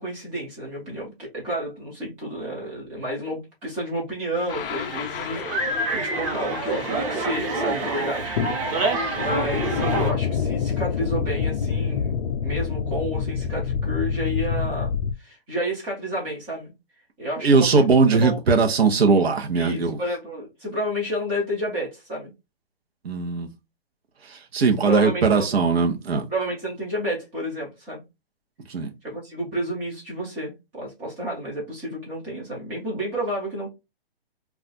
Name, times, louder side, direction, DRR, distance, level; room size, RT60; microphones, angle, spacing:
voice 1, 0.0-8.9 9.2-14.9 15.2-16.7 17.2-17.9 18.2-18.4 19.5-22.3 24.8-25.6 26.3-28.0 29.0-33.7, equal, 5° right, 0.3 m, -31 dB
sound 1, 4.4-10.1, right 2 dB, 35° right, 1.0 m, -27 dB
sound 2, 4.5-7.7 8.4-15.1, left 6 dB, 65° left, 0.5 m, -27 dB
voice 2, 17.4-20.0 23.0-23.5 24.2-26.3 28.7-28.9, right 4 dB, 85° right, 0.8 m, -20 dB
2.4 x 2.3 x 3.8 m
hypercardioid pair, 150°, 30 cm